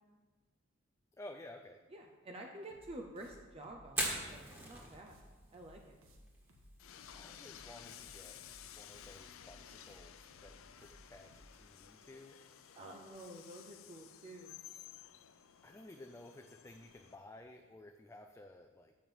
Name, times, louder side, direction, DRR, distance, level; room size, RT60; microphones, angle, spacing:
voice 1, 1.1-1.8 7.1-8.4 8.8-12.4 15.6-18.9, left 1 dB, 15° left, 5 dB, 0.4 m, -54 dB
voice 2, 1.9-5.2 5.5-6.0 12.8-14.6, right 1 dB, 30° right, 1 dB, 0.7 m, -50 dB
sound 1, 2.7-11.5, equal, 85° right, 1.4 m, -61 dB
Fire, 3.8-17.7, right 1 dB, 10° right, 1.7 m, -48 dB
Train, 6.8-17.2, left 10 dB, 80° left, 0.5 m, -55 dB
7.2 x 6.0 x 7.0 m, 1.4 s
head